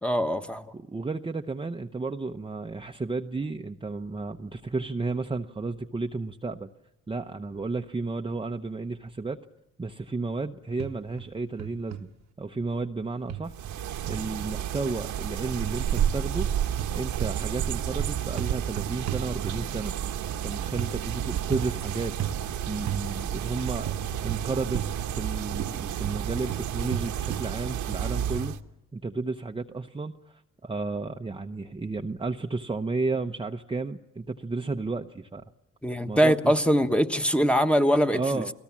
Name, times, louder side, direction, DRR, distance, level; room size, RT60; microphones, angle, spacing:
voice 1, 0.0-0.7 35.8-38.4, equal, 5° left, 7 dB, 1.3 m, -23 dB
voice 2, 0.7-6.7 7.1-9.4 9.8-12.1 12.4-13.5 14.0-16.5 16.9-19.9 20.4-22.1 22.7-23.9 24.2-28.6 28.9-35.4 36.1-36.5 38.1-38.5, right 3 dB, 15° right, 4 dB, 0.8 m, -32 dB
sound 1, 10.8-11.3 11.6-12.0 13.3-14.3 15.5-16.5 16.8-19.8 20.8-21.0 21.5-21.8 22.2-22.4 22.9-23.0 23.8-25.3 25.6-27.5, right 11 dB, 60° right, 1.1 m, -34 dB
sound 2, 13.5-28.6, right 10 dB, 75° right, 1.3 m, -31 dB
30.0 x 18.5 x 7.3 m, 0.93 s
cardioid pair, 90°, 30 cm